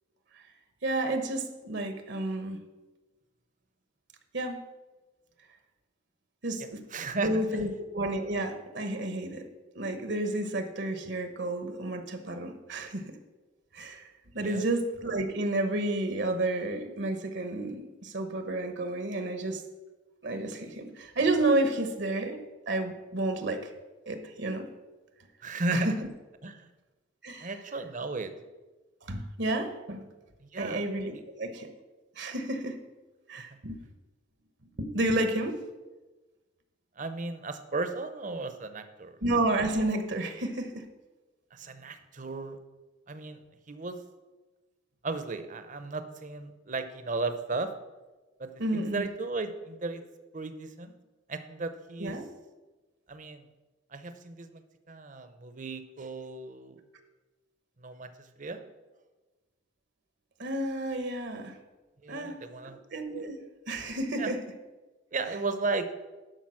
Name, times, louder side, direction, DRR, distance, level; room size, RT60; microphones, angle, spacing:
voice 1, 0.8-2.6 4.3-4.6 6.4-6.8 7.2-9.4 9.7-13.1 13.7-19.6 20.2-22.4 22.7-23.7 24.1-24.7 25.7-26.0 27.2-27.5 29.1-30.0 30.6-31.7 32.2-32.8 33.3-33.8 34.8-35.6 39.2-40.9 48.6-49.0 52.0-52.2 60.4-61.6 62.1-62.4 62.6-63.4 63.7-64.4, right 2 dB, 60° right, 8 dB, 1.0 m, -31 dB
voice 2, 6.9-7.7 14.4-14.6 25.4-25.9 26.4-26.7 27.4-28.3 30.4-30.8 33.4-33.5 37.0-39.2 41.5-42.6 43.1-43.4 43.7-44.0 45.0-47.7 48.4-50.0 50.3-50.9 51.3-52.2 53.1-53.5 53.9-56.8 57.8-58.6 62.0-62.8 64.2-64.3 65.1-65.9, right 3 dB, 40° right, 10 dB, 0.8 m, -35 dB
12.0 x 5.1 x 6.3 m, 1.2 s
head